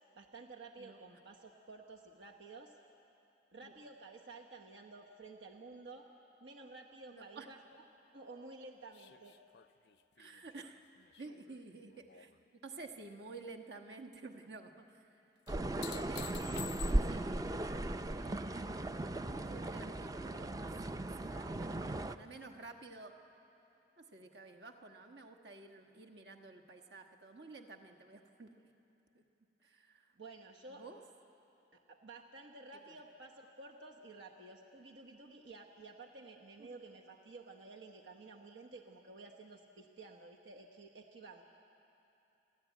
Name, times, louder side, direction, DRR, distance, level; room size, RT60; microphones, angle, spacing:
voice 1, 0.1-2.8 3.5-6.1 6.4-7.8 8.1-9.4 30.2-30.8 31.7-41.4, right 3 dB, 85° right, 1 dB, 1.1 m, -53 dB
voice 2, 7.1-7.7 10.2-10.8 11.2-12.3 12.6-15.2 15.9-17.4 18.0-18.8 19.5-20.6 21.2-23.1 24.0-28.7 29.1-29.2 29.6-30.1 30.7-31.0 32.9-33.0 36.6-36.7, right 3 dB, 65° right, 2 dB, 1.4 m, -52 dB
sound 1, 8.9-12.4 12.8-13.4 15.5-17.4 19.9-20.0, left 14 dB, 65° left, 0.4 m, -51 dB
sound 2, 15.5-22.2, right 1 dB, 20° right, 0.4 m, -37 dB
30.0 x 11.5 x 9.2 m, 3.0 s
head